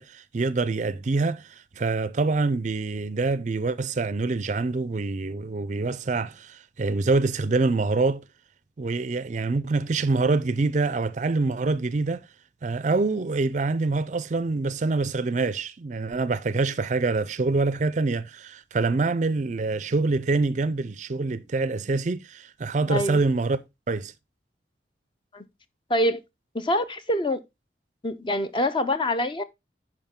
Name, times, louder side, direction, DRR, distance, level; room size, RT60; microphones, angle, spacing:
voice 1, 0.0-8.2 8.8-12.3 12.6-23.6 23.9-24.1, right 3 dB, 40° right, 0.4 m, -25 dB
voice 2, 22.9-23.2 25.3-25.4 25.9-26.2 26.5-27.4 28.0-29.4, left 1 dB, 25° left, 0.6 m, -25 dB
10.5 x 4.7 x 3.6 m
head